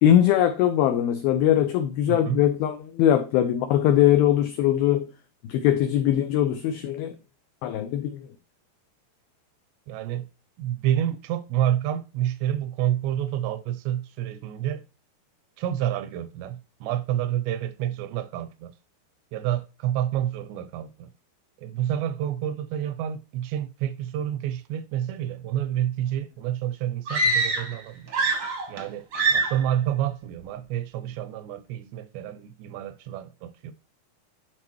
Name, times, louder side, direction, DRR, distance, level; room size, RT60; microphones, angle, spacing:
voice 1, 0.0-5.1 5.5-7.1 7.6-8.3, left 11 dB, 85° left, 2.1 m, -21 dB
voice 2, 2.1-2.4 9.9-10.3 10.6-14.8 15.6-18.7 19.3-21.1 21.6-28.1 28.7-29.1 29.3-33.7, right 11 dB, 85° right, 2.7 m, -29 dB
sound 1, 27.1-27.8 28.1-28.8 29.1-29.7, right 3 dB, 65° right, 1.1 m, -24 dB
12.0 x 4.1 x 3.0 m
omnidirectional pair, 5.1 m